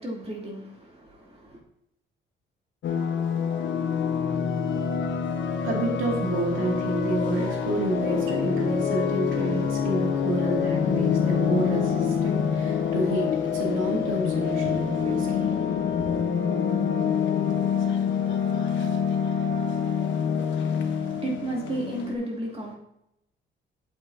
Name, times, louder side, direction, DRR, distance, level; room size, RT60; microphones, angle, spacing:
voice 1, 0.0-1.6 20.2-22.8, right 1 dB, 30° right, 3.0 m, -34 dB
sound 1, 2.8-22.2, left 7 dB, 70° left, 1.1 m, -26 dB
voice 2, 5.6-15.7 16.0-16.2, right 2 dB, 85° right, 2.4 m, -29 dB
8.6 x 7.6 x 2.8 m
cardioid pair, 90°, 20 cm